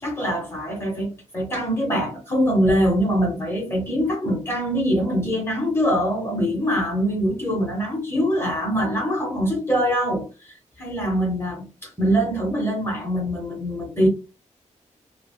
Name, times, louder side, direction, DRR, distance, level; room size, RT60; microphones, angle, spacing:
voice 1, 0.0-14.1, equal, 20° left, 0.7 m, -23 dB
3.2 x 2.0 x 2.3 m
wide cardioid pair, 180°, 13 cm